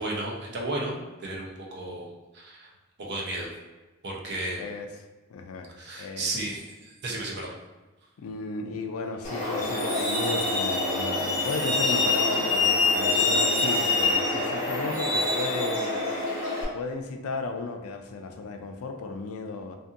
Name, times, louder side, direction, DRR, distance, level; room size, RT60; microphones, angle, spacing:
voice 1, 0.0-2.7 3.0-3.5 4.0-4.6 5.8-7.5, right 2 dB, 55° right, -2 dB, 0.6 m, -33 dB
voice 2, 5.3-5.7 6.0-6.3 8.2-16.0 16.7-19.8, left 3 dB, 85° left, 5 dB, 0.4 m, -34 dB
Truck, 9.2-16.6, left 3 dB, 35° left, 0.9 m, -25 dB
2.6 x 2.6 x 2.5 m, 1.2 s
head